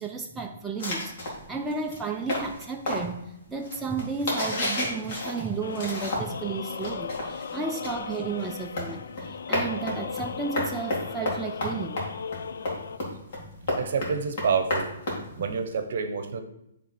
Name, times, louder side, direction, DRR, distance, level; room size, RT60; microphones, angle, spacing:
voice 1, 0.0-3.2 3.5-12.1 13.6-13.8 15.4-15.6, right 4 dB, 5° right, 0 dB, 0.4 m, -33 dB
sound 1, 0.8-6.5 6.7-15.8, left 1 dB, 40° left, 2.2 m, -32 dB
sound 2, 5.6-13.0, left 6 dB, 75° left, 0.3 m, -37 dB
voice 2, 13.8-14.9 15.4-16.4, right 5 dB, 60° right, 8 dB, 0.8 m, -28 dB
9.0 x 3.4 x 4.3 m, 0.80 s
hypercardioid pair, 165°, 0 cm